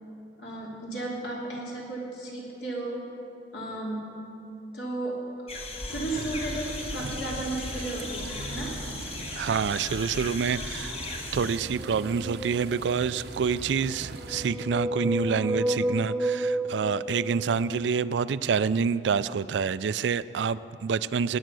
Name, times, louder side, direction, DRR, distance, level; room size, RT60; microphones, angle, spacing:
voice 1, 0.4-3.0 3.5-4.2 4.7-5.2 5.8-8.8, right 2 dB, 75° left, -3 dB, 3.4 m, -34 dB
sound 1, 5.5-11.6, left 2 dB, 35° left, 1.2 m, -37 dB
sound 2, 5.9-14.5, right 3 dB, 65° right, 0.7 m, -41 dB
voice 2, 9.4-11.0 11.3-21.4, right 6 dB, 85° right, 17 dB, 0.4 m, -27 dB
sound 3, 11.6-13.2 14.0-17.9, right 1 dB, 5° right, 0.5 m, -32 dB
20.0 x 9.2 x 6.2 m, 2.8 s
head